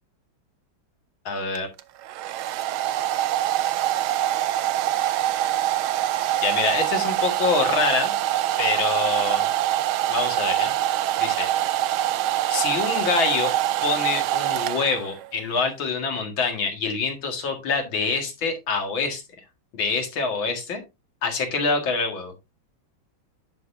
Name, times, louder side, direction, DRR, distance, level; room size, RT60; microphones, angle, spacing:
voice 1, 1.3-1.7 6.4-8.1 8.6-9.4 10.1-10.7 11.2-11.5 12.5-13.5 13.8-19.2 19.7-20.8 21.2-22.3, left 4 dB, 70° left, 4 dB, 2.7 m, -25 dB
Domestic sounds home sounds, 1.5-15.3, right 13 dB, 90° right, 1.5 m, -24 dB
10.5 x 6.0 x 2.7 m, 0.24 s
omnidirectional pair, 2.2 m